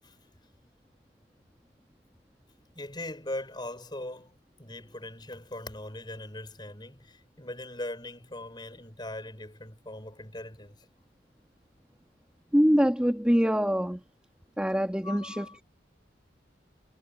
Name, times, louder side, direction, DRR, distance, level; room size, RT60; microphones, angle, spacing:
voice 1, 2.7-4.3 4.6-10.8 15.0-15.6, left 1 dB, 25° left, 5.3 m, -40 dB
voice 2, 12.5-14.0 14.6-15.6, equal, 5° right, 2.0 m, -24 dB
head